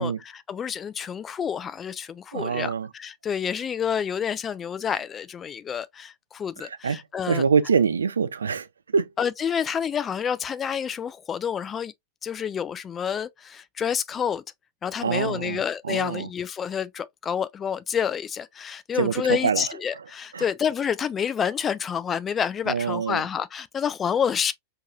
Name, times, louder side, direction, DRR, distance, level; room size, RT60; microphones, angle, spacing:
voice 1, 0.0-7.4 9.2-11.9 12.2-14.4 14.8-24.5, left 7 dB, 25° left, 0.3 m, -28 dB
voice 2, 2.3-2.9 6.6-7.0 7.3-8.7 8.9-9.1 15.0-16.3 19.0-19.7 20.3-20.4 22.7-23.2, right 6 dB, 70° right, 0.4 m, -25 dB
4.5 x 2.9 x 2.3 m
figure-of-eight pair, 90°, 0 cm